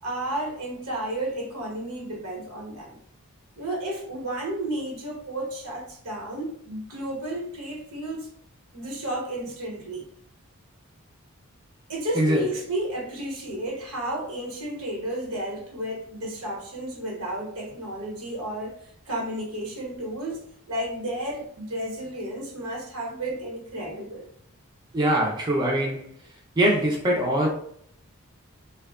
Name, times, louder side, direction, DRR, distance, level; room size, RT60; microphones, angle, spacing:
voice 1, 0.0-2.9 3.6-8.3 8.7-10.1 11.9-24.3, right 1 dB, 80° right, -2 dB, 0.9 m, -32 dB
voice 2, 24.9-26.0 26.6-27.5, right 1 dB, 20° right, -3 dB, 0.3 m, -22 dB
2.7 x 2.1 x 2.2 m, 0.65 s
head